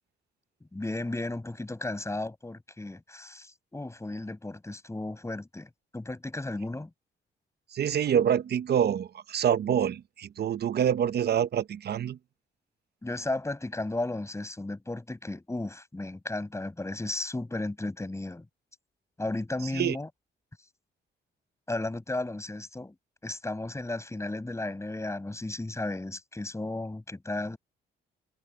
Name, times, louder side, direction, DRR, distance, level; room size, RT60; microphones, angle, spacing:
voice 1, 0.7-6.9 13.0-18.5 19.2-20.1 21.7-23.0 23.2-27.6, left 2 dB, 15° left, 7.0 m, -34 dB
voice 2, 7.7-12.2 19.7-20.0, right 9 dB, 55° right, 0.9 m, -26 dB
cardioid pair, 90°, 20 cm